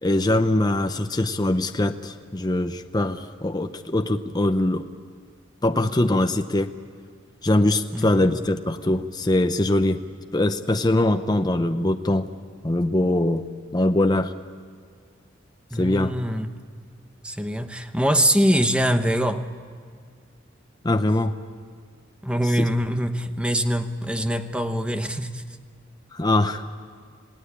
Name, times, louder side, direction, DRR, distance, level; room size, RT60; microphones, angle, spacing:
voice 1, 0.0-4.9 5.6-6.7 7.4-10.0 10.3-12.3 12.6-13.4 13.7-14.3 15.7-16.1 20.8-21.3 22.5-22.7 26.1-26.6, left 1 dB, 20° left, 7 dB, 0.7 m, -22 dB
voice 2, 7.9-8.3 15.7-16.5 17.2-19.4 22.2-25.4, equal, 5° right, 8 dB, 0.9 m, -23 dB
27.5 x 17.5 x 8.6 m, 2.1 s
head